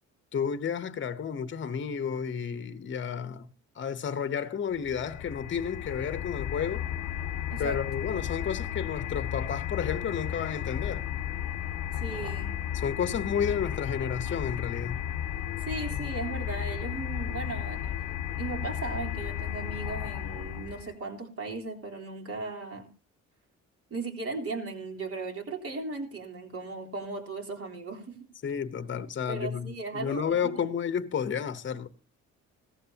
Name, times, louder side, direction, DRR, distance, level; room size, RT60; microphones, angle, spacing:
voice 1, 0.3-3.5 3.7-6.8 7.6-11.1 12.7-15.0 28.4-31.9, left 7 dB, 40° left, 1.0 m, -31 dB
sound 1, 4.7-20.9, left 10 dB, 75° left, 0.9 m, -34 dB
voice 2, 7.5-8.1 11.9-12.5 15.6-17.9 18.4-22.9 23.9-28.2 29.3-30.8, right 3 dB, 50° right, 3.6 m, -37 dB
16.5 x 14.5 x 2.9 m
cardioid pair, 90°, 30 cm